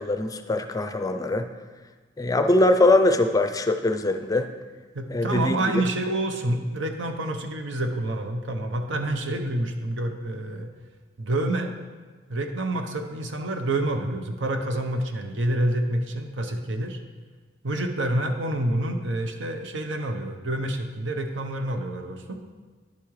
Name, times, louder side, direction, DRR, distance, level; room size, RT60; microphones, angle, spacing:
voice 1, 0.0-1.5 2.2-4.5 5.1-5.8, left 2 dB, 20° left, 8 dB, 0.4 m, -22 dB
voice 2, 4.9-10.7 11.2-11.7 12.3-17.0 17.6-22.4, right 1 dB, 85° right, 5 dB, 0.8 m, -28 dB
11.0 x 8.4 x 3.2 m, 1.4 s
head